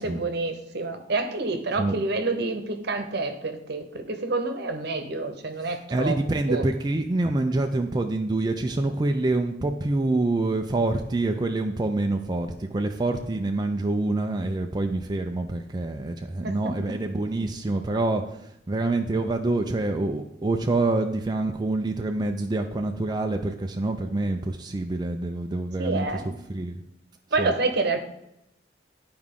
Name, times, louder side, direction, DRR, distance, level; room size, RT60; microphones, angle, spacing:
voice 1, 0.0-6.2 6.5-6.6 16.4-17.0 25.8-26.3 27.3-28.0, right 3 dB, 65° right, 7 dB, 0.9 m, -28 dB
voice 2, 5.6-26.8 27.4-27.5, right 2 dB, 25° right, 4 dB, 0.4 m, -26 dB
11.0 x 4.7 x 3.7 m, 0.82 s
head